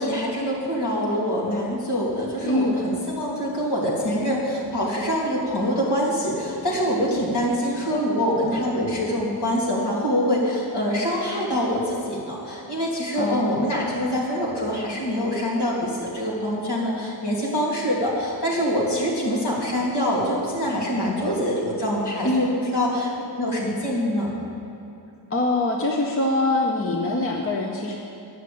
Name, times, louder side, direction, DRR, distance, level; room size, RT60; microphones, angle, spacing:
voice 1, 0.0-23.1 23.4-24.3, equal, 60° left, -5 dB, 2.9 m, -25 dB
voice 2, 2.4-2.7 13.1-13.5 22.2-22.5 25.3-28.0, left 2 dB, 30° left, 0 dB, 0.7 m, -23 dB
11.0 x 6.4 x 8.5 m, 2.8 s
wide cardioid pair, 180°, 45 cm